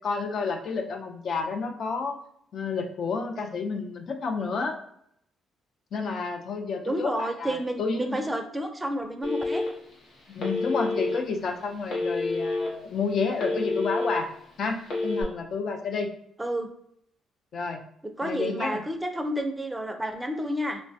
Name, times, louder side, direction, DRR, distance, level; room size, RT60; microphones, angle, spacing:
voice 1, 0.0-2.2 2.5-4.8 5.9-8.2 10.3-14.3 14.6-16.1 17.5-17.8 18.2-18.8, left 4 dB, 60° left, 4 dB, 0.4 m, -30 dB
voice 2, 6.8-9.6 16.4-16.7 18.2-20.8, equal, 15° right, 5 dB, 0.4 m, -30 dB
Telephone, 9.2-9.9 10.4-11.2 11.9-12.7 13.1-14.2 14.8-15.2, left 3 dB, 75° left, 0.9 m, -28 dB
3.0 x 2.2 x 2.6 m, 0.71 s
cardioid pair, 90°, 0 cm